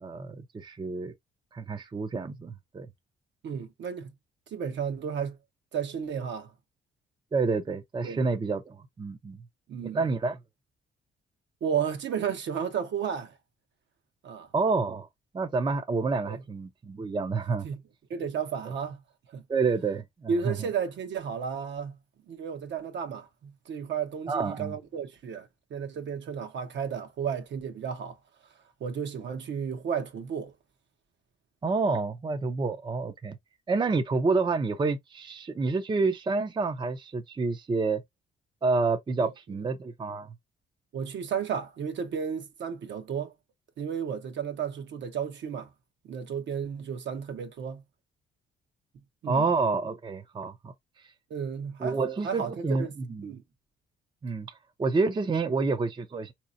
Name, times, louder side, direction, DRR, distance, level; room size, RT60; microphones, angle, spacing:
voice 1, 0.0-1.1 1.5-2.9 7.3-9.4 9.8-10.4 14.5-15.1 15.3-17.7 19.5-20.6 24.3-24.8 31.6-33.4 33.7-38.0 38.6-40.3 49.3-50.7 51.8-53.3 54.2-54.5 54.8-56.3, right 4 dB, 25° right, 0.5 m, -28 dB
voice 2, 3.4-4.1 4.5-5.4 5.7-6.5 8.0-8.2 9.7-10.0 11.6-13.4 14.2-14.5 16.2-16.4 17.6-17.8 18.1-19.0 19.3-19.4 20.3-22.0 22.3-28.2 28.8-30.5 39.2-39.3 40.9-43.3 43.8-45.7 46.0-47.8 49.2-49.4 51.3-52.0 52.2-52.9 53.2-53.4, right 7 dB, 65° right, 0.9 m, -33 dB
4.0 x 2.9 x 2.5 m
cardioid pair, 90°, 20 cm